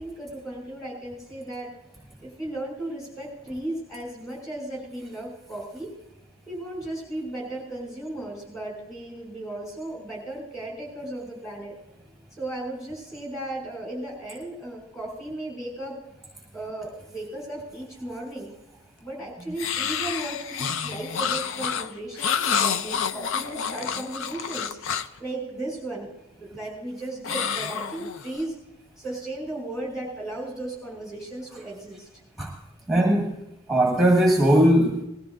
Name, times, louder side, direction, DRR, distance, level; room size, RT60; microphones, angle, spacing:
voice 1, 0.0-1.7 2.2-6.0 6.5-11.8 12.4-16.0 16.5-18.5 19.0-24.8 25.2-26.1 26.4-28.5 29.0-32.1, right 1 dB, 15° left, 0 dB, 6.0 m, -35 dB
sound 1, 19.6-25.2 27.2-28.4, left 7 dB, 60° left, 0.5 m, -28 dB
voice 2, 32.9-33.4 33.7-35.0, right 1 dB, ahead, -1 dB, 1.4 m, -19 dB
20.0 x 14.0 x 2.5 m, 0.94 s
head